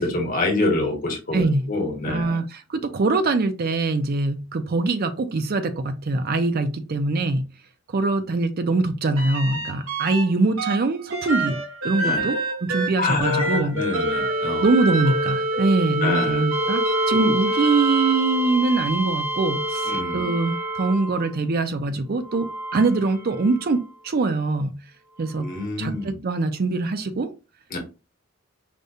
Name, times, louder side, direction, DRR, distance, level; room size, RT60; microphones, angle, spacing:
voice 1, 0.0-2.4 12.0-12.3 13.0-14.7 16.0-16.5 17.1-17.3 19.8-20.3 25.4-26.2 27.7-27.8, left 2 dB, 45° left, 1.1 m, -26 dB
voice 2, 2.0-7.4 7.9-13.8 14.6-22.5 22.7-24.8 25.2-25.5 25.8-27.3, right 3 dB, 50° right, 0.5 m, -23 dB
sound 1, 9.2-10.2 10.6-21.3 22.2-23.8 25.5-25.6, right 1 dB, 85° right, 1.3 m, -26 dB
5.0 x 2.2 x 2.6 m
head